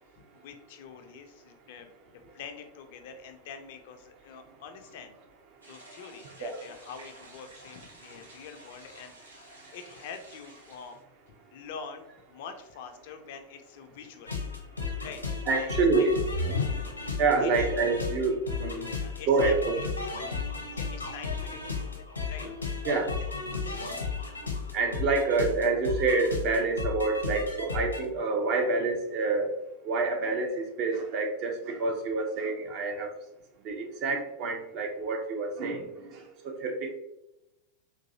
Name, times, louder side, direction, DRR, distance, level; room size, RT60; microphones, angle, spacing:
voice 1, 0.2-5.2 5.7-11.0 11.5-14.3 15.0-15.2 15.5-16.1 17.4-17.7 18.8-20.3 20.7-22.5, left 6 dB, 50° left, 7 dB, 0.4 m, -45 dB
sound 1, 5.6-11.0, right 1 dB, 75° right, 0.9 m, -52 dB
sound 2, 14.3-28.0, left 4 dB, 80° left, 0.7 m, -34 dB
voice 2, 15.5-16.2 16.8-16.9 17.2-18.9 19.3-19.8 22.8-23.1 24.7-29.5 29.8-33.1 33.6-36.9, right 3 dB, 40° right, 2 dB, 0.6 m, -27 dB
3.8 x 2.6 x 2.7 m, 0.90 s
figure-of-eight pair, 90°, 0 cm